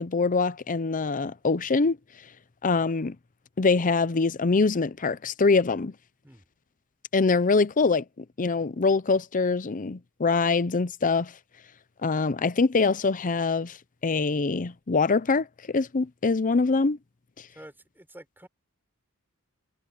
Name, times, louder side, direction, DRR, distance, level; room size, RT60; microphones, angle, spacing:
voice 1, 0.0-2.0 2.6-3.2 3.6-5.9 7.1-8.0 8.4-11.3 12.0-13.8 14.0-17.0, left 4 dB, 35° left, 0.6 m, -24 dB
voice 2, 17.5-18.5, right 1 dB, 10° right, 5.2 m, -48 dB
head